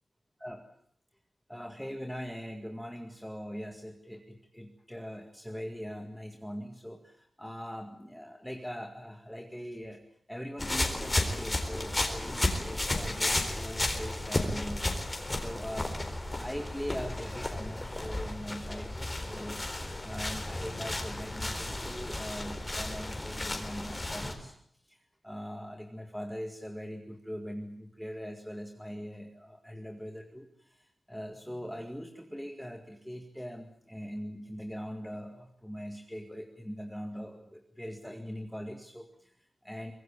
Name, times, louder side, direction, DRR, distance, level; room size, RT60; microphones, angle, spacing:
voice 1, 0.4-0.7 1.5-10.0 10.3-15.0 15.4-24.6 24.8-39.9, equal, ahead, 4 dB, 2.0 m, -41 dB
sound 1, 10.6-24.3, left 1 dB, 20° left, 4.1 m, -33 dB
24.5 x 21.5 x 8.8 m, 0.65 s
wide cardioid pair, 130°, 0 cm